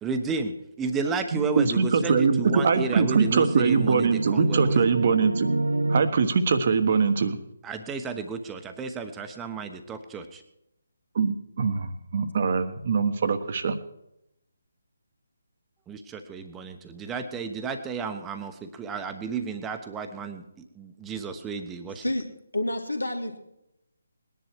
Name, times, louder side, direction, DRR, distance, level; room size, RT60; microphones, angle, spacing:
voice 1, 0.0-4.8 7.6-10.4 15.9-22.0, right 5 dB, 10° right, 7 dB, 1.1 m, -32 dB
voice 2, 1.1-5.5 5.9-7.4 11.1-13.8, right 5 dB, 45° right, 9 dB, 1.3 m, -23 dB
sound 1, 1.3-6.0, right 2 dB, 70° right, 0.7 m, -29 dB
voice 3, 22.5-23.4, left 1 dB, 85° left, 4 dB, 2.4 m, -28 dB
20.0 x 10.5 x 4.7 m, 0.83 s
figure-of-eight pair, 145°, 0 cm